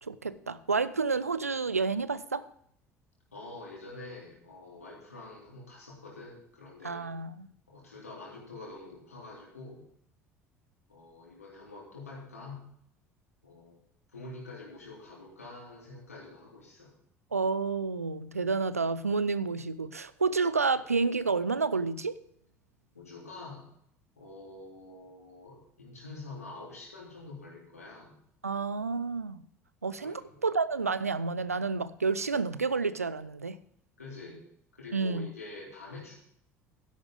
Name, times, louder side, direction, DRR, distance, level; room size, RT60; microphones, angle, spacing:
voice 1, 0.0-2.4 6.8-7.5 17.3-22.2 28.4-29.4 29.8-33.6 34.9-35.3, right 4 dB, 85° right, 16 dB, 0.5 m, -30 dB
voice 2, 3.3-7.1 7.7-9.9 10.9-12.6 13.4-13.8 14.1-16.9 22.9-23.7 24.2-28.2 30.0-30.4 34.0-34.4 34.7-36.2, left 2 dB, 80° left, -2 dB, 3.6 m, -46 dB
12.5 x 10.5 x 3.8 m, 0.69 s
figure-of-eight pair, 60°, 8 cm